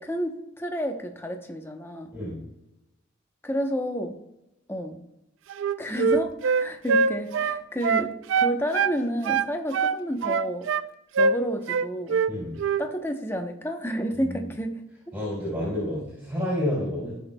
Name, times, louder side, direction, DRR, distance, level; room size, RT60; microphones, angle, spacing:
voice 1, 0.0-2.1 3.4-4.2 4.7-5.0 5.8-10.7 11.2-12.2 12.8-14.7, equal, 10° left, 5 dB, 0.8 m, -30 dB
Wind instrument woodwind instrument, 5.5-9.0 9.2-10.9 11.2-11.4 11.7-12.3 12.6-12.8, right 5 dB, 65° right, 0.3 m, -23 dB
voice 2, 15.1-17.1, left 1 dB, 10° right, -7 dB, 3.5 m, -29 dB
17.0 x 6.1 x 2.2 m, 0.93 s
head